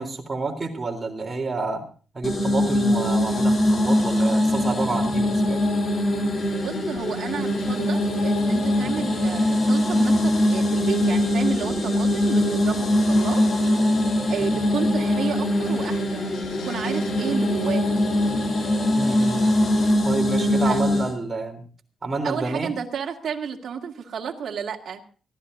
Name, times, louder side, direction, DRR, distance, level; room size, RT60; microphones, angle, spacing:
voice 1, 0.0-1.9 2.1-5.6 19.0-19.5 20.0-21.6 22.0-22.7, right 3 dB, 25° right, 2 dB, 3.7 m, -29 dB
sound 1, 2.2-21.1, left 1 dB, 30° left, 2.7 m, -22 dB
sound 2, 6.4-19.9, left 5 dB, 80° left, 7.1 m, -38 dB
voice 2, 6.6-13.5 14.3-18.0 20.6-20.8 22.2-25.0, right 7 dB, 60° right, 0 dB, 2.2 m, -31 dB
24.5 x 16.0 x 2.7 m, 0.38 s
wide cardioid pair, 150°, 0 cm